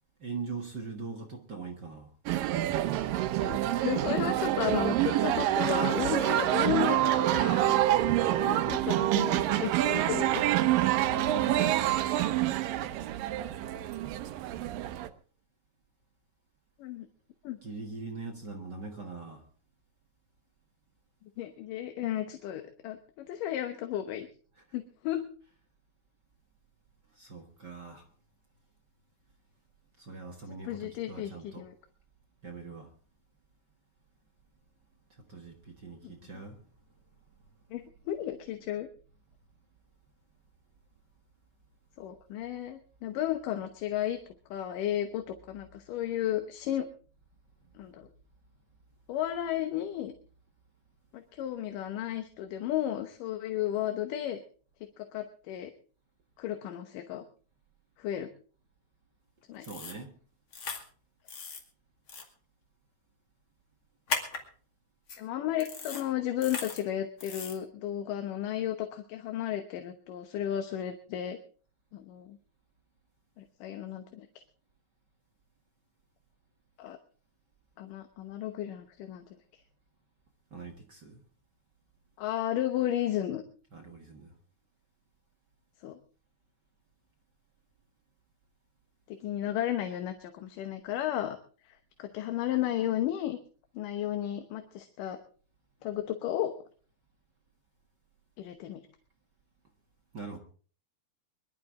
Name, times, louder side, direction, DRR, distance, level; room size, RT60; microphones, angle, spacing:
voice 1, 0.2-2.1 11.0-12.2 17.6-19.4 24.5-24.8 27.1-28.1 30.0-31.7 32.4-32.9 35.1-36.6 59.6-60.2 80.5-81.2 83.7-84.3 100.1-100.4, right 4 dB, 45° right, 1.5 m, -42 dB
sound 1, 2.3-15.1, right 13 dB, 85° right, 2.6 m, -27 dB
voice 2, 3.4-7.9 8.4-10.4 16.8-17.1 17.4-17.6 21.4-24.3 24.7-25.3 30.5-31.7 36.0-36.1 37.7-38.9 42.0-44.2 44.5-46.9 47.8-48.1 49.1-50.1 51.1-54.4 55.0-55.7 56.4-57.2 58.0-58.3 59.5-59.7 65.2-71.4 71.9-72.4 73.4-74.3 76.8-77.0 77.8-79.2 82.2-83.4 85.8-86.0 89.1-91.4 91.7-93.4 93.7-95.2 95.8-96.5 98.4-98.8, left 11 dB, 75° left, 2.6 m, -33 dB
sound 2, 59.6-60.0 60.5-60.8 61.3-61.6 62.1-62.2 64.1-64.4 65.1-65.2 65.6-66.0 66.4-66.8 67.2-67.6, left 4 dB, 40° left, 2.7 m, -36 dB
23.5 x 12.0 x 3.7 m
omnidirectional pair, 3.9 m